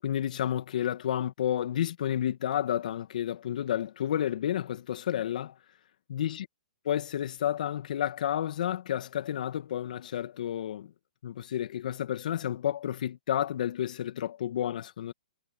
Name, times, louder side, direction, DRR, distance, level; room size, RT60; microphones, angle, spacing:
voice 1, 0.0-5.6 6.1-6.5 6.9-10.9 11.2-15.1, left 10 dB, 60° left, 1.8 m, -31 dB
hypercardioid pair, 140°, 5 cm